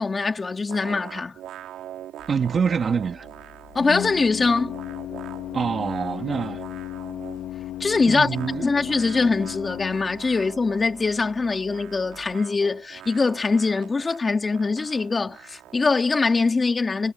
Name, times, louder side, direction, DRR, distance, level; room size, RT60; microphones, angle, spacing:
voice 1, 0.0-1.3 3.7-4.8 7.8-8.3 8.6-17.1, left 4 dB, 15° left, 3.4 m, -23 dB
sound 1, 0.7-7.5 8.0-16.1, right 12 dB, 45° right, 6.4 m, -43 dB
Organ, 2.2-12.3, left 13 dB, 45° left, 3.6 m, -36 dB
voice 2, 2.3-3.3 5.5-6.6 8.1-8.7, right 6 dB, 20° right, 3.2 m, -25 dB
supercardioid pair, 135°, 0 cm